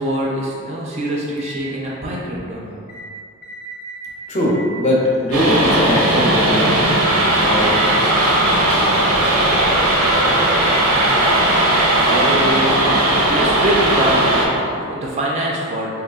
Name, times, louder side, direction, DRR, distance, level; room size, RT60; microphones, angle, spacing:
voice 1, 0.0-2.8 11.2-16.0, right 1 dB, 30° right, -4 dB, 0.3 m, -24 dB
sound 1, 1.4-1.6 2.9-3.1 3.4-4.1 4.5-4.7 5.5-5.6 7.7-7.9, right 1 dB, 85° left, 0.5 m, -35 dB
voice 2, 4.3-7.0 7.4-10.2, left 1 dB, 30° left, -4 dB, 0.5 m, -22 dB
sound 2, 5.3-14.5, right 1 dB, 85° right, 0.5 m, -16 dB
3.2 x 2.7 x 2.3 m, 2.4 s
head